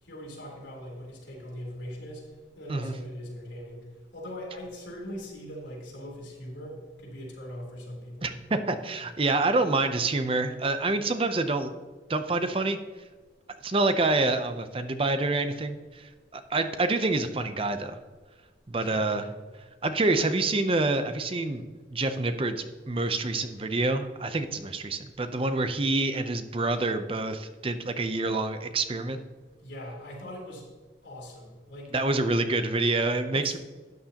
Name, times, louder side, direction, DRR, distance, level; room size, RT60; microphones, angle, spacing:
voice 1, 0.0-2.3 2.6-3.9 4.1-8.4 18.8-19.4 29.6-30.7 31.0-31.9 33.3-33.6, equal, 80° left, -2 dB, 3.4 m, -41 dB
voice 2, 8.2-11.7 12.1-12.8 13.6-18.0 18.7-19.2 19.8-29.2 31.9-33.6, right 2 dB, 30° right, 9 dB, 0.6 m, -27 dB
12.5 x 9.2 x 2.9 m, 1.4 s
head